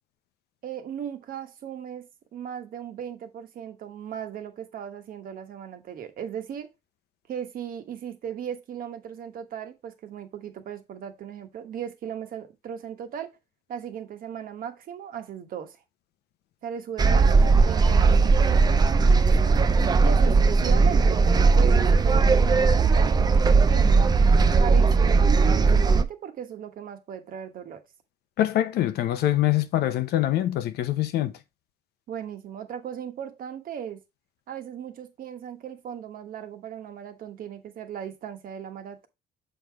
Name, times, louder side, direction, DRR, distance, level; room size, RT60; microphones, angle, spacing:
voice 1, 0.6-6.7 7.3-13.3 13.7-15.8 16.6-19.7 20.0-24.1 24.6-27.8 32.1-34.0 34.5-39.1, right 8 dB, 55° right, 1.2 m, -37 dB
sound 1, 17.0-26.0, right 4 dB, 25° right, 0.5 m, -18 dB
voice 2, 28.4-31.3, left 13 dB, 70° left, 0.8 m, -24 dB
6.9 x 3.7 x 4.7 m
cardioid pair, 110°, 17 cm